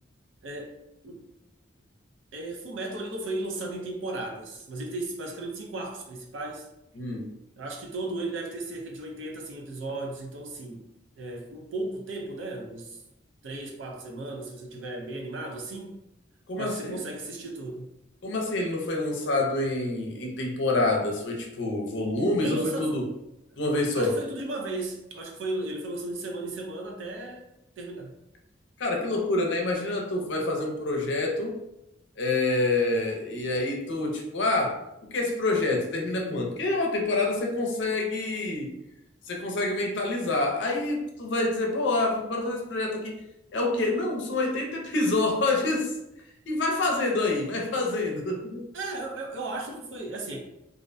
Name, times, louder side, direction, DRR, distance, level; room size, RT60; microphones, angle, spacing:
voice 1, 0.4-0.8 1.0-1.2 2.3-6.7 7.6-10.9 11.2-13.0 13.4-16.0 16.6-17.9 22.4-23.0 23.9-27.5 27.8-28.1 48.7-50.4, right 2 dB, 75° right, 0.5 m, -35 dB
voice 2, 7.0-7.3 16.5-17.0 18.2-23.1 23.6-24.2 28.8-31.6 32.2-34.8 35.1-38.8 39.3-43.2 43.5-46.0 46.5-48.6, left 2 dB, 65° left, 0.5 m, -27 dB
2.4 x 2.1 x 2.5 m
head